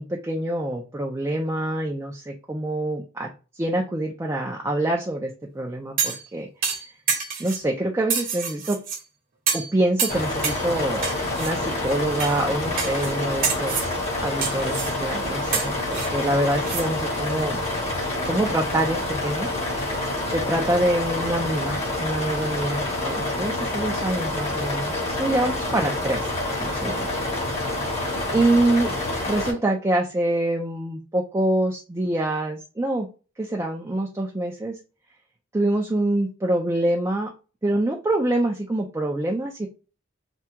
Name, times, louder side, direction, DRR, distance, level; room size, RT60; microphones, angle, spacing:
voice 1, 0.0-3.3 3.5-6.5 7.4-8.8 9.5-11.1 11.4-13.9 14.2-17.6 18.2-26.3 26.6-27.1 27.8-28.0 28.3-28.9 29.2-33.1 33.4-34.8 35.5-37.3 37.6-39.7, right 1 dB, 15° right, -1 dB, 0.4 m, -25 dB
sound 1, 6.0-6.3 6.6-7.6 8.1-9.0 9.5-9.7 10.0-10.6 11.0-11.5 12.2-12.4 12.8-13.1 13.4-13.9 14.4-14.9 15.5-16.9 17.2-17.3, right 6 dB, 45° right, 0.9 m, -27 dB
sound 2, 10.1-29.5, left 2 dB, 35° left, 1.0 m, -27 dB
3.4 x 2.3 x 2.8 m, 0.33 s
head